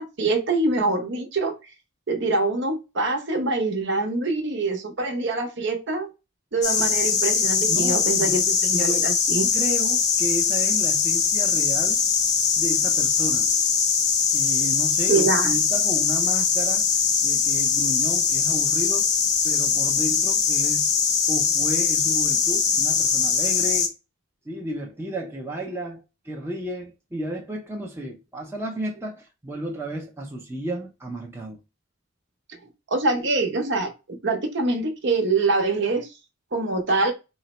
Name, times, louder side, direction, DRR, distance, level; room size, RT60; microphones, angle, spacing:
voice 1, 0.0-1.5 2.1-6.1 6.5-8.4 8.7-9.5 15.1-15.5 32.9-36.1 36.5-37.1, right 3 dB, 55° right, 0.8 m, -24 dB
sound 1, 6.6-23.9, left 6 dB, 35° left, 0.5 m, -22 dB
voice 2, 7.6-9.1 9.5-12.0 12.6-13.5 14.3-16.8 17.2-19.1 19.4-20.9 21.3-23.9 24.5-31.6, right 1 dB, 10° right, 0.5 m, -33 dB
3.9 x 2.0 x 4.1 m
head